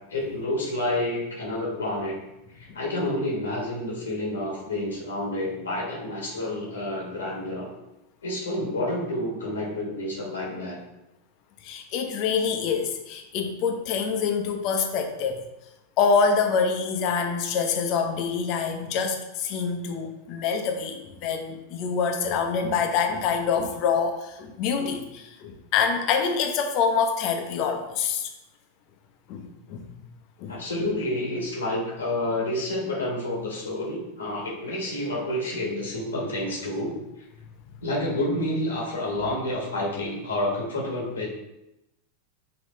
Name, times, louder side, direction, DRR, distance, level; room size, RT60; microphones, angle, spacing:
voice 1, 0.1-2.2 2.6-7.7 8.2-10.8 30.5-37.0 37.8-41.3, left 1 dB, 85° left, -3 dB, 1.2 m, -29 dB
voice 2, 11.6-15.4 16.0-28.3 29.3-30.0 30.4-30.6 37.4-37.8, left 6 dB, 50° left, 5 dB, 0.7 m, -26 dB
5.4 x 2.9 x 3.1 m, 0.93 s
hypercardioid pair, 95°, 0 cm